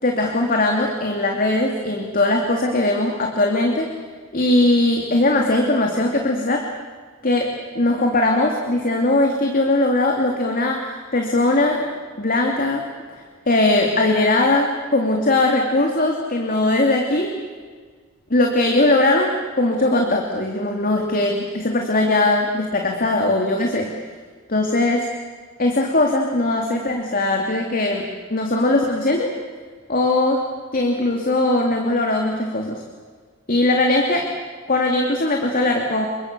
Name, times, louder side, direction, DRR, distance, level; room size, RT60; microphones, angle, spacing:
voice 1, 0.0-3.9 4.3-6.7 7.2-11.9 12.2-17.4 18.3-23.9 24.5-25.1 25.6-28.0 28.3-29.3 29.9-30.5 30.7-32.8 33.5-34.3 34.7-36.1, left 2 dB, 45° left, 2 dB, 2.7 m, -20 dB
29.0 x 24.5 x 6.9 m, 1.5 s
head